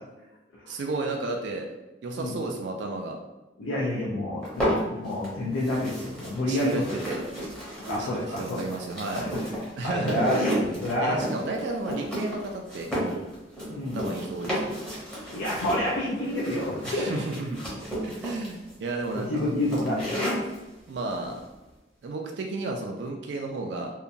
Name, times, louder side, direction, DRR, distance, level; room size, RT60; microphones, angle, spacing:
voice 1, 0.7-1.7 2.0-3.2 6.5-7.2 8.0-9.3 9.8-10.3 11.0-13.2 13.9-14.8 16.8-19.4 20.9-21.4 22.0-23.9, right 3 dB, 70° right, 2 dB, 0.3 m, -33 dB
voice 2, 3.6-7.0 7.8-8.6 9.2-11.2 13.7-14.1 15.3-17.1 19.1-20.4, left 1 dB, 85° left, -5 dB, 0.5 m, -29 dB
sound 1, 4.4-5.3 5.6-20.6, equal, 5° left, 0.7 m, -32 dB
2.8 x 2.2 x 2.5 m, 1.1 s
head